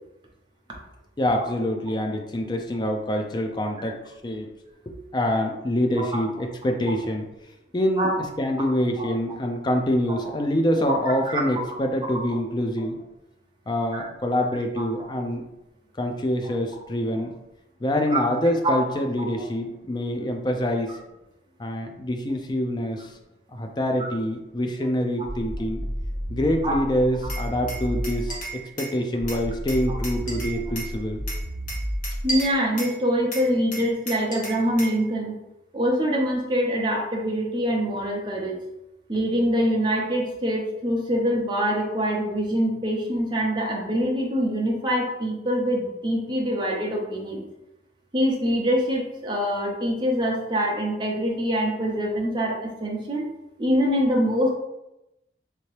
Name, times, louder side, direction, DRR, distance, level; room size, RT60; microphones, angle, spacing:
voice 1, 1.2-4.5 4.9-7.2 7.7-8.1 8.4-13.0 13.7-15.4 16.0-17.3 17.8-21.0 21.6-23.2 23.5-25.8 26.3-28.4 28.8-31.2, equal, 25° left, 3 dB, 0.4 m, -25 dB
voice 2, 10.9-11.4 13.9-14.1 14.8-14.9 18.1-18.2 18.6-18.7 26.6-26.8 32.2-35.4 35.7-38.6 39.1-47.4 48.1-53.3 53.6-54.5, equal, 25° right, -1 dB, 0.6 m, -24 dB
sound 1, 25.3-28.5 29.2-32.5, equal, ahead, 1.1 m, -32 dB
Glass, 27.3-29.0 29.3-30.9 31.3-33.0 33.3-35.0, right 2 dB, 45° left, 1.1 m, -34 dB
3.4 x 2.8 x 3.2 m, 0.91 s
head